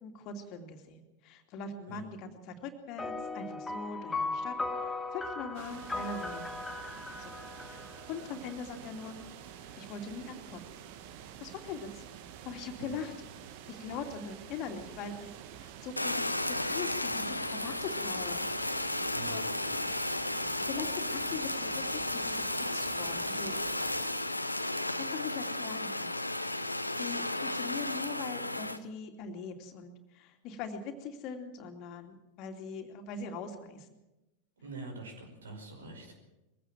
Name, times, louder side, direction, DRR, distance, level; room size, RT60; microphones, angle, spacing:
voice 1, 0.0-6.6 7.2-9.2 9.8-10.7 11.4-12.0 12.4-13.1 13.7-15.3 15.6-18.4 19.3-19.5 20.3-23.7 24.9-26.1 26.6-33.9, left 5 dB, 40° left, 5 dB, 2.7 m, -42 dB
sound 1, 3.0-8.8, left 3 dB, 10° left, 1.3 m, -38 dB
sound 2, 5.5-24.1, right 9 dB, 45° right, 1.6 m, -48 dB
Fire, 16.0-28.8, left 1 dB, 85° left, 1.1 m, -34 dB
voice 2, 19.1-19.5 34.6-36.1, right 3 dB, 70° right, 4 dB, 5.3 m, -44 dB
22.0 x 16.0 x 7.6 m, 0.99 s
figure-of-eight pair, 90°, 0 cm